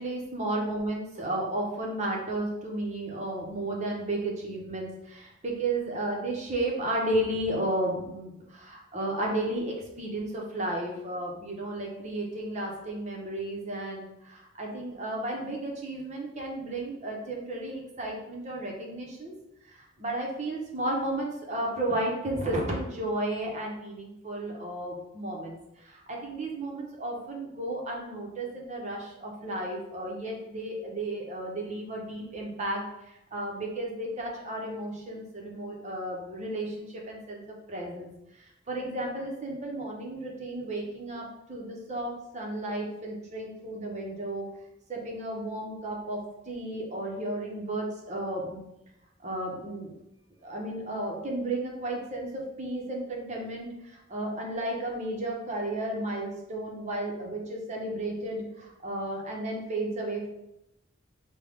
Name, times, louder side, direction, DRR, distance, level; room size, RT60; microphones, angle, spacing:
voice 1, 0.0-19.3 20.0-25.6 25.8-32.8 33.3-37.4 37.7-38.1 38.7-44.5 44.9-48.6 49.2-50.0 50.4-60.3, right 1 dB, 35° right, -1 dB, 0.8 m, -33 dB
5.1 x 2.2 x 3.5 m, 0.86 s
head